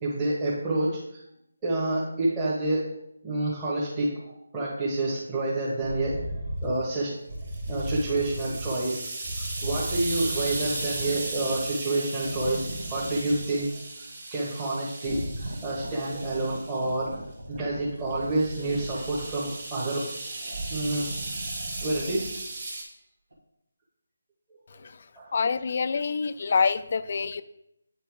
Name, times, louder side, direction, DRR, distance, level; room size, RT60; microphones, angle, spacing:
voice 1, 0.0-1.2 1.6-2.8 3.2-6.3 6.6-7.1 7.7-9.0 9.6-13.7 14.3-15.2 15.6-17.1 17.5-20.0 20.7-21.0 21.8-22.4 24.7-24.8 25.1-25.3, right 2 dB, 20° right, -10 dB, 1.5 m, -28 dB
sound 1, 5.8-6.8 7.3-8.8 9.2-11.8 12.2-13.8 15.0-19.5 20.4-22.4 23.3-23.4, right 1 dB, 70° right, 1.8 m, -37 dB
sound 2, 7.4-17.0 18.1-22.8, right 2 dB, 45° right, 2.1 m, -37 dB
voice 2, 25.3-27.4, left 5 dB, 45° left, 13 dB, 0.4 m, -26 dB
8.8 x 4.4 x 3.5 m, 0.78 s
figure-of-eight pair, 160°, 0 cm